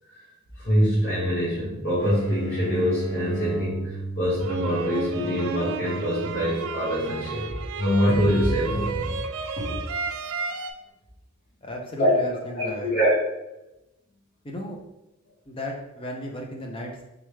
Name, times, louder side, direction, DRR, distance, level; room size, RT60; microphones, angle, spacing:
voice 1, 0.6-9.0 9.5-9.6 12.0-12.1 12.5-13.1, equal, 45° left, -11 dB, 1.4 m, -24 dB
sound 1, 2.0-7.5, right 2 dB, 15° right, 1.4 m, -36 dB
sound 2, 4.4-10.7, right 5 dB, 80° right, 0.4 m, -32 dB
voice 2, 11.6-12.9 14.4-14.8 15.5-17.0, equal, 25° left, 0 dB, 0.5 m, -35 dB
3.6 x 3.4 x 3.2 m, 0.94 s
head